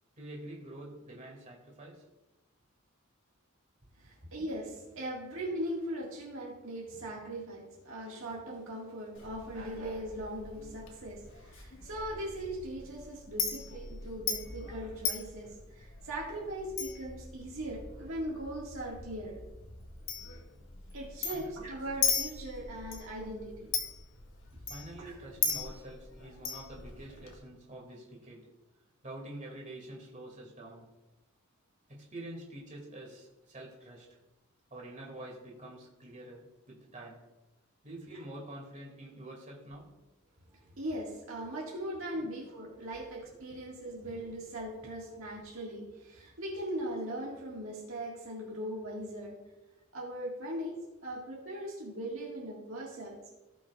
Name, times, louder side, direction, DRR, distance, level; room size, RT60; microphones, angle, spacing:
voice 1, 0.2-2.1 21.3-21.6 24.7-28.5 29.0-30.9 31.9-34.2 34.7-37.2 37.8-40.0 42.1-42.3, right 1 dB, 35° right, -2 dB, 2.4 m, -47 dB
voice 2, 4.0-19.4 20.9-23.7 25.0-25.1 40.8-49.4 49.9-53.4, right 1 dB, 65° right, -4 dB, 1.9 m, -39 dB
Chink clink, 9.1-27.4, left 5 dB, 65° left, 1.5 m, -39 dB
17.0 x 6.1 x 2.4 m, 1.0 s
head